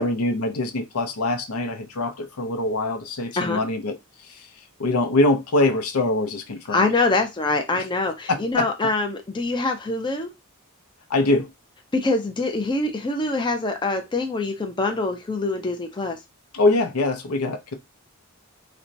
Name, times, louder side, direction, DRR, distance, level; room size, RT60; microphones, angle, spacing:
voice 1, 0.0-4.0 4.2-4.5 4.8-6.9 7.8-7.9 8.3-8.7 11.1-11.5 16.5-17.7, left 2 dB, 75° left, 0.6 m, -23 dB
voice 2, 6.7-10.3 11.9-16.2, left 3 dB, 20° left, 0.5 m, -24 dB
4.2 x 2.2 x 2.5 m
head